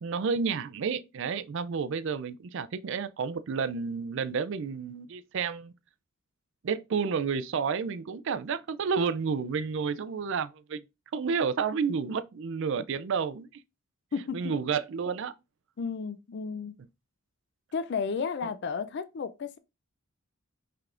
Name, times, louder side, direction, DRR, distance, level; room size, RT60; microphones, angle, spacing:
voice 1, 0.0-5.7 6.6-10.8 11.1-13.5 14.3-15.3, right 5 dB, 55° right, 0.4 m, -30 dB
voice 2, 14.1-14.5 15.8-16.7 17.7-19.6, left 5 dB, 50° left, 0.4 m, -33 dB
5.7 x 3.4 x 2.5 m
head